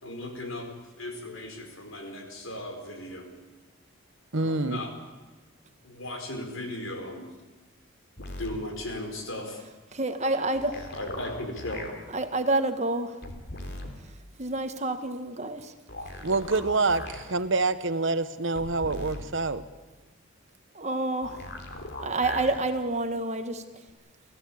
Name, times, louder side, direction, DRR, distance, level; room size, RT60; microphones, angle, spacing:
voice 1, 0.0-0.7 1.0-3.3 4.3-4.9 5.8-7.3 8.4-9.6 10.9-11.9, left 1 dB, 65° left, 5 dB, 4.4 m, -36 dB
voice 2, 4.3-4.8 16.2-19.6, right 3 dB, 60° right, 12 dB, 1.0 m, -26 dB
sound 1, 8.2-8.6 10.5-11.9 13.2-13.9 15.9-17.2 18.5-19.2 21.2-22.6 23.9-24.0, left 1 dB, 50° left, 3.3 m, -39 dB
voice 3, 9.9-10.8 12.1-13.2 14.4-15.7 20.7-21.4 22.0-23.6, right 2 dB, 30° right, 8 dB, 1.3 m, -28 dB
29.5 x 15.5 x 8.5 m, 1.2 s
head